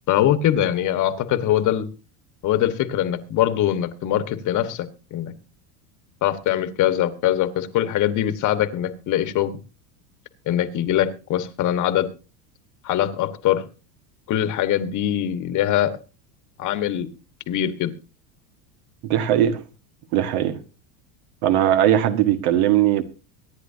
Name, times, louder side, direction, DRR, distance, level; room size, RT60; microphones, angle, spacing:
voice 1, 0.1-1.9 2.4-5.3 6.2-9.6 10.5-12.1 12.8-13.6 14.3-16.0 16.6-17.1 17.5-17.9, left 11 dB, 40° left, 1.5 m, -22 dB
voice 2, 19.0-19.6 20.1-20.6 21.4-23.0, right 11 dB, 70° right, 1.8 m, -19 dB
24.5 x 10.0 x 2.8 m
supercardioid pair, 135°, 46 cm